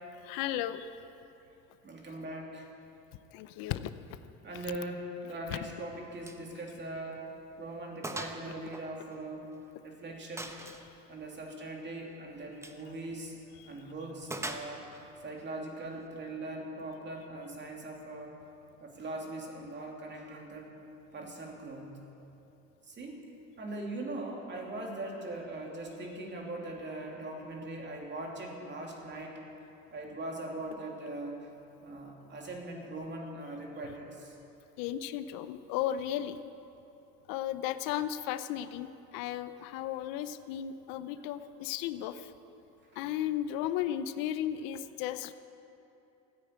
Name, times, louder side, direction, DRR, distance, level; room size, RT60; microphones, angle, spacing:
voice 1, 0.2-0.9 3.3-3.9 5.5-5.6 13.6-13.7 34.8-36.4 37.3-38.9 39.1-42.3 43.0-45.3, left 11 dB, 85° left, 12 dB, 0.7 m, -34 dB
voice 2, 1.8-2.6 4.4-7.2 7.6-9.5 9.8-10.5 11.1-13.3 13.6-14.9 15.2-18.4 18.8-20.7 21.1-21.9 22.9-23.2 23.6-29.4 29.9-31.4 31.8-34.3 41.2-41.3 42.9-43.0, right 2 dB, 35° right, 0 dB, 2.7 m, -41 dB
Gunshot gunfire, 6.2-6.5 6.8-6.9 7.4-7.5 8.0-8.4 8.7-9.7 10.4-10.9 12.5-12.8 14.3-15.0, right 1 dB, 10° right, 0.9 m, -40 dB
14.0 x 9.5 x 8.9 m, 3.0 s
cardioid pair, 120°, 33 cm